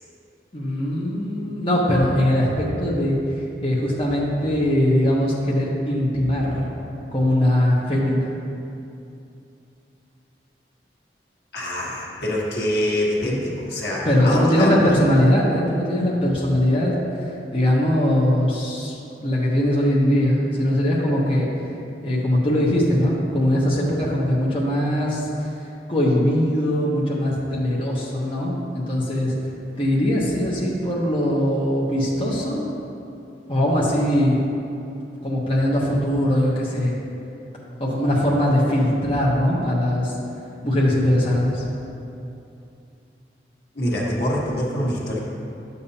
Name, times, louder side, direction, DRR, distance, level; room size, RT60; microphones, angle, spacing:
voice 1, 0.5-3.2 3.6-6.7 7.1-8.3 13.2-13.3 14.0-19.0 19.2-21.5 22.0-25.5 25.9-29.3 29.8-32.7 33.5-34.4 35.2-36.9 37.8-40.1 40.6-41.6, left 1 dB, 30° left, -6 dB, 1.0 m, -21 dB
voice 2, 11.5-14.8 43.7-45.2, left 1 dB, 75° left, -4 dB, 1.4 m, -24 dB
10.5 x 6.9 x 2.8 m, 2.7 s
head